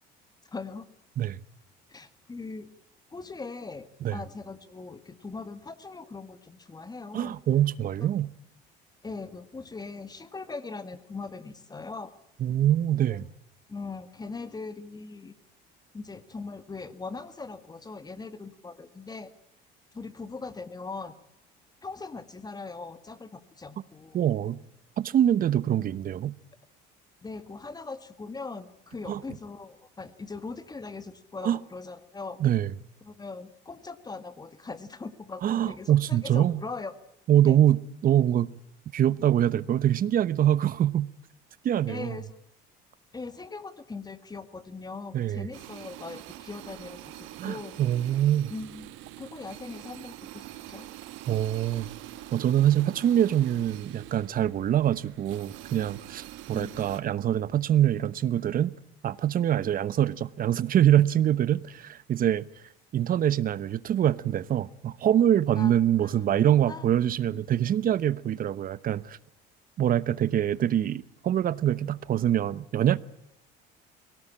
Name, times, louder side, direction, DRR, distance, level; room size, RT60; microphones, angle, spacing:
voice 1, 0.5-0.9 1.9-2.7 3.1-7.3 8.0-8.1 9.0-12.1 13.1-13.2 13.7-15.4 15.9-19.3 19.9-21.1 21.8-24.3 27.2-32.4 33.0-37.0 37.5-37.6 41.9-42.4 43.1-47.9 48.5-50.9 56.5-56.8 65.6-65.8 66.0-66.3 66.6-66.8 67.3-67.4, left 4 dB, 20° left, 2.0 m, -40 dB
voice 2, 7.1-8.3 12.4-13.2 24.1-24.6 25.0-26.3 29.1-29.2 31.4-31.6 32.4-32.7 35.4-36.6 37.3-38.5 38.9-41.1 41.6-42.2 45.1-45.5 47.4-48.5 51.3-51.9 52.3-58.7 59.0-62.4 62.9-69.2 69.8-73.0, right 11 dB, 45° right, 1.0 m, -24 dB
sound 1, 45.5-57.0, right 15 dB, 75° right, 1.5 m, -45 dB
22.5 x 18.0 x 8.7 m
supercardioid pair, 100°, 20 cm